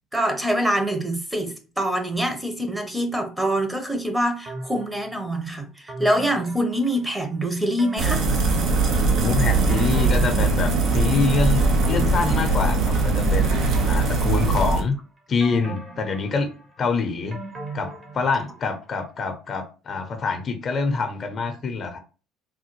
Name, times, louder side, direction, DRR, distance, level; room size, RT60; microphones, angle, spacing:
voice 1, 0.1-8.2, right 1 dB, 10° right, 0.8 m, -25 dB
sound 1, 4.5-5.3 5.9-7.3 7.8-9.1 9.5-11.1 11.6-12.9 13.5-14.9 15.4-18.7 19.0-19.1, right 2 dB, 40° right, 1.1 m, -38 dB
sound 2, 8.0-14.8, right 3 dB, 60° right, 0.6 m, -21 dB
voice 2, 9.1-15.0 15.3-17.4 17.7-22.0, left 4 dB, 45° left, 0.7 m, -26 dB
3.4 x 2.2 x 3.0 m
hypercardioid pair, 60°, 0 cm